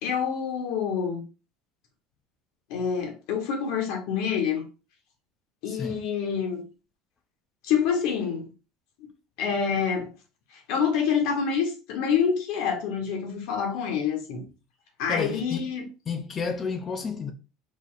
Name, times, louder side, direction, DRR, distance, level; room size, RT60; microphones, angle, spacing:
voice 1, 0.0-1.2 2.7-4.7 5.6-6.6 7.6-8.5 9.4-10.1 10.7-14.4 15.0-15.9, left 7 dB, 60° left, 1.2 m, -27 dB
voice 2, 5.7-6.1 15.1-15.7 16.1-17.3, left 5 dB, 20° left, 0.4 m, -31 dB
4.9 x 4.0 x 2.5 m
cardioid pair, 170°, 0 cm